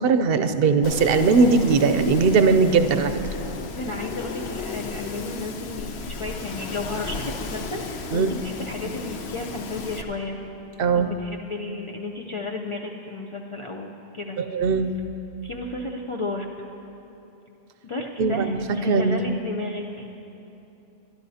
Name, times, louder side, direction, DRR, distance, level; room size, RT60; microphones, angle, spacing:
voice 1, 0.0-3.1 8.1-8.4 10.8-11.1 14.4-14.9 18.2-18.6 18.9-19.4, right 4 dB, 65° right, 9 dB, 0.8 m, -19 dB
Wind, 0.8-10.0, left 4 dB, 85° left, 1.0 m, -34 dB
voice 2, 3.7-10.4 10.9-14.4 15.4-16.5 17.8-20.2, left 2 dB, 40° left, -1 dB, 0.5 m, -33 dB
23.0 x 12.0 x 2.8 m, 3.0 s
omnidirectional pair, 1.1 m